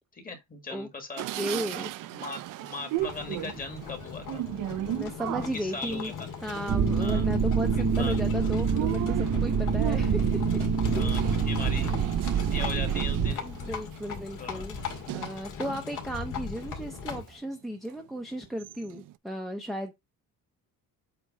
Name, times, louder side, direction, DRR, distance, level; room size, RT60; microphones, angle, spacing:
voice 1, 0.1-1.3 1.8-4.4 5.5-6.3 7.0-7.3 8.0-8.2 10.9-11.9 12.3-13.4 14.4-14.6, left 3 dB, 25° left, 1.7 m, -39 dB
sound 1, 1.2-15.9 16.4-17.3 17.9-18.0 18.3-19.1, right 15 dB, 65° right, 0.5 m, -37 dB
voice 2, 1.4-1.9 4.8-6.1 6.4-10.6 10.9-11.4 12.5-12.6 13.4-14.8 15.1-19.9, equal, ahead, 0.6 m, -35 dB
Livestock farm animals working animals, 3.0-17.4, left 7 dB, 65° left, 2.0 m, -39 dB
sound 2, 6.7-13.3, right 6 dB, 45° right, 0.8 m, -26 dB
8.3 x 3.0 x 5.3 m
cardioid pair, 180°, 34 cm